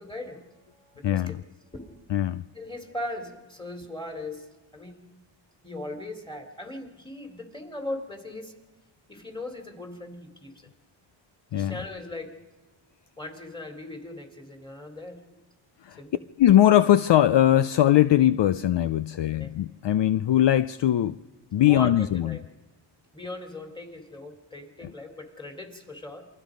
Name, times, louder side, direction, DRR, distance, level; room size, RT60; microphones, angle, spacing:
voice 1, 0.0-1.4 1.7-2.0 2.5-5.1 5.6-8.5 9.1-10.7 11.5-12.3 13.2-15.2 16.0-16.3 19.1-19.5 21.6-22.4 23.1-26.3, left 1 dB, 10° left, 3.5 m, -39 dB
voice 2, 1.0-1.4 2.1-2.4 11.5-11.7 15.8-16.0 16.4-21.2 21.5-22.4, left 12 dB, 60° left, 0.6 m, -20 dB
28.5 x 22.0 x 5.2 m
cardioid pair, 80°, 48 cm